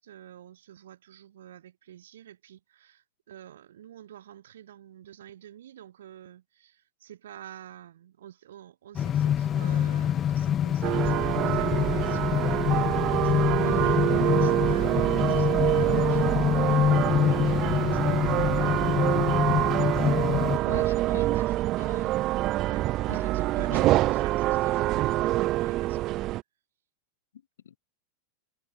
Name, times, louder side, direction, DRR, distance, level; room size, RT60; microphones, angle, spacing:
voice 1, 0.0-12.4 12.7-17.1 17.5-18.8 19.9-21.8 22.6-26.2, right 11 dB, 75° right, 6.9 m, -49 dB
sound 1, 8.9-20.6, left 10 dB, 30° left, 2.0 m, -26 dB
sound 2, 10.8-26.4, right 16 dB, 45° right, 1.5 m, -26 dB
voice 2, 20.6-21.4 21.8-22.1 23.1-23.9 27.6-27.8, left 9 dB, 80° left, 2.5 m, -41 dB
hypercardioid pair, 100°, 0 cm